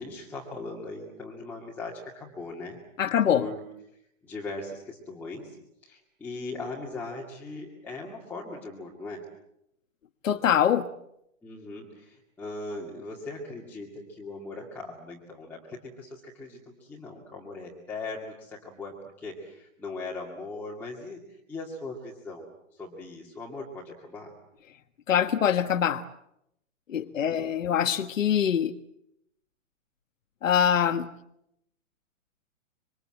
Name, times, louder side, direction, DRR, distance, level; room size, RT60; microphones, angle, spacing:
voice 1, 0.0-2.8 3.4-3.6 4.2-5.6 5.8-9.2 11.4-24.3 27.0-27.5, left 3 dB, 5° left, 2.3 m, -39 dB
voice 2, 3.0-3.4 10.2-10.9 25.1-26.0 26.9-28.7 30.4-31.1, left 9 dB, 70° left, 1.5 m, -24 dB
26.5 x 24.5 x 7.8 m
hypercardioid pair, 170°, 40 cm